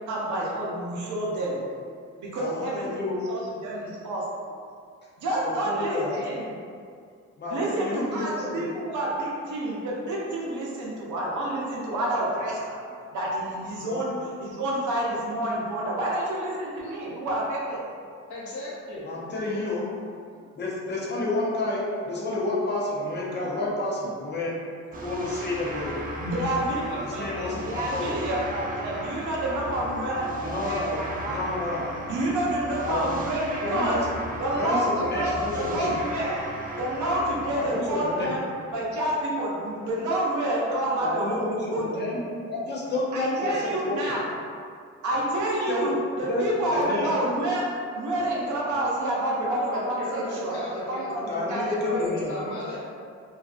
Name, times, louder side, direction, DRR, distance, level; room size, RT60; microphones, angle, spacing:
voice 1, 0.1-1.6 2.2-4.2 5.2-6.4 7.5-12.8 13.1-17.8 26.2-31.4 32.0-34.0 34.4-42.1 43.1-44.3 45.0-45.9 46.2-52.1, right 1 dB, 75° right, -5 dB, 0.8 m, -29 dB
voice 2, 2.4-3.2 5.4-6.2 7.4-8.7 13.8-14.0 19.0-20.0 20.4-24.6 24.9-25.9 27.0-28.2 30.4-31.9 32.8-33.2 33.6-34.0 34.5-35.9 37.5-38.3 41.0-44.1 45.7-45.9 46.3-47.2 51.3-52.4, left 2 dB, 35° left, -4 dB, 0.7 m, -30 dB
voice 3, 18.3-19.0 49.4-52.8, left 1 dB, 75° left, -7 dB, 0.9 m, -36 dB
sound 1, 24.9-39.3, equal, 30° right, 0.4 m, -37 dB
2.6 x 2.4 x 2.4 m, 2.2 s
cardioid pair, 90°, 30 cm